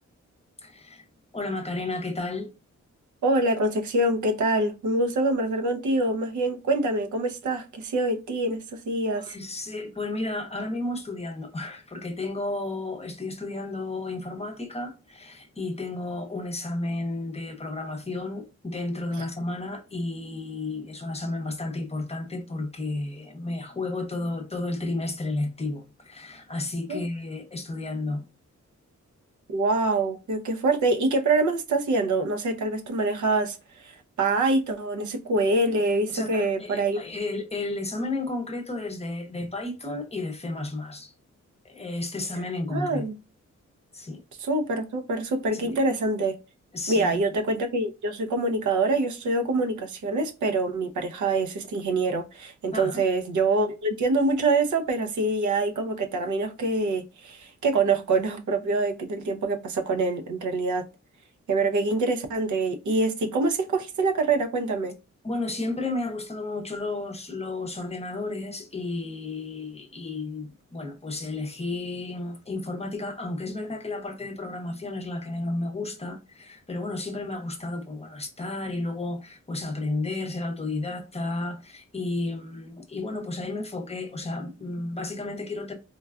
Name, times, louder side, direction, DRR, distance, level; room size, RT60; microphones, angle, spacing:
voice 1, 0.6-1.0 1.3-2.5 9.1-28.3 36.1-41.1 41.6-43.1 43.9-44.2 45.5-45.8 46.7-47.2 52.7-53.0 65.2-85.7, left 2 dB, 20° left, 0.6 m, -32 dB
voice 2, 3.2-9.3 26.9-27.0 29.5-33.6 33.8-37.0 42.7-43.1 44.4-46.4 46.9-60.8 61.5-65.0, right 2 dB, 85° right, 0.7 m, -25 dB
3.9 x 2.2 x 2.3 m
wide cardioid pair, 115°, 29 cm